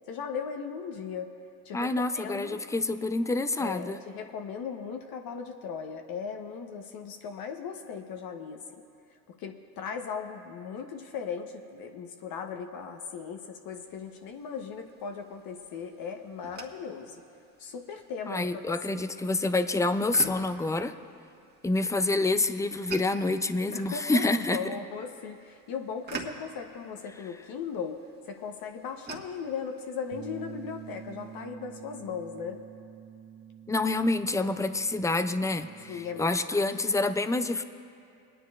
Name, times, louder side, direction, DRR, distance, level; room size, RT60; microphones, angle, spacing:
voice 1, 0.1-1.3 1.6-2.6 3.6-8.8 9.3-17.2 17.6-18.6 18.9-19.0 23.7-28.0 28.3-32.6 35.9-36.6, left 6 dB, 55° left, 4 dB, 0.9 m, -38 dB
voice 2, 1.7-4.0 18.3-20.9 21.6-24.6 33.7-37.6, left 2 dB, 10° left, 10 dB, 0.4 m, -27 dB
sound 1, 13.7-31.5, right 4 dB, 20° right, 1.4 m, -48 dB
Bass guitar, 30.1-36.4, right 8 dB, 45° right, 1.0 m, -47 dB
24.5 x 9.9 x 2.4 m, 2.5 s
supercardioid pair, 80°, 44 cm